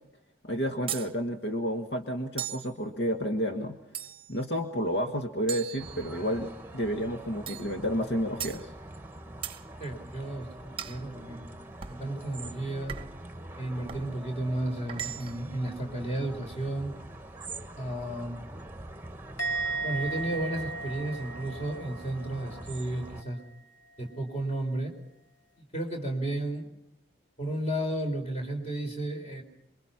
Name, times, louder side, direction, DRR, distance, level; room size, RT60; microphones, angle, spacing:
voice 1, 0.4-3.8 4.3-8.7, equal, 65° left, 6 dB, 1.5 m, -31 dB
sound 1, 0.9-1.1 2.4-2.7 3.9-4.4 5.5-6.4 7.5-7.7 8.4-8.6 9.4-9.6 10.8-11.0 11.8-12.0 12.9-13.2 13.9-14.1 14.9-15.5, right 10 dB, 30° right, 0.9 m, -38 dB
sound 2, 5.8-23.2, right 1 dB, 10° right, 1.2 m, -44 dB
voice 2, 9.8-13.0 13.5-17.0 17.8-18.4 19.8-23.4 24.0-24.9 25.7-26.7 27.4-29.4, right 1 dB, 35° left, 4 dB, 4.5 m, -33 dB
Musical instrument, 19.4-22.8 23.0-23.5, right 4 dB, 85° left, 3.3 m, -36 dB
27.0 x 23.5 x 5.8 m, 0.86 s
head